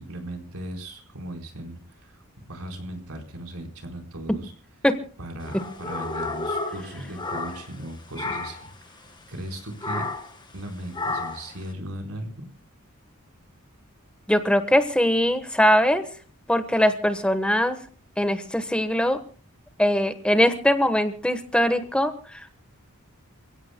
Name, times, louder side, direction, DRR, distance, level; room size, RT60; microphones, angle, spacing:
voice 1, 0.0-2.2 2.5-4.5 5.2-10.1 10.5-12.5, right 1 dB, 90° right, 3 dB, 4.3 m, -37 dB
sound 1, 5.4-7.9 8.1-8.7 9.8-10.4 10.9-11.5, left 3 dB, 20° left, 2.0 m, -31 dB
voice 2, 14.3-16.0 16.5-17.8 18.2-19.2 19.8-22.6, equal, 5° left, 8 dB, 1.2 m, -21 dB
29.0 x 16.5 x 2.2 m, 0.40 s
head